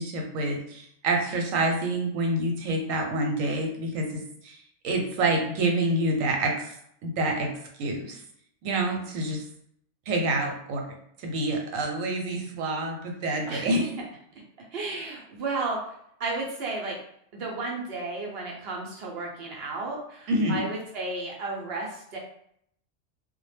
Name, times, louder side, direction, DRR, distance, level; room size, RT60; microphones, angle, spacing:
voice 1, 0.0-4.5 4.8-6.7 7.0-7.5 7.8-8.2 8.6-9.4 10.1-10.9 11.2-13.8 20.3-20.6, right 2 dB, 90° right, 2 dB, 1.0 m, -27 dB
voice 2, 13.5-13.9 14.7-15.9 16.2-17.0 17.3-22.2, right 3 dB, 65° right, -2 dB, 0.7 m, -33 dB
2.1 x 2.0 x 3.2 m, 0.69 s
omnidirectional pair, 1.3 m